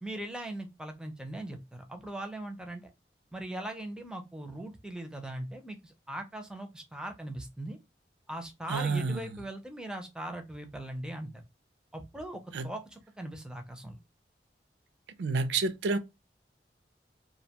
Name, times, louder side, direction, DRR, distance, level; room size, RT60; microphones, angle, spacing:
voice 1, 0.0-2.9 3.3-7.8 8.3-11.4 11.9-14.0, right 1 dB, 5° right, 0.4 m, -40 dB
voice 2, 8.7-9.4 12.5-12.7 15.2-16.0, right 4 dB, 80° right, 0.4 m, -29 dB
2.4 x 2.1 x 2.7 m
head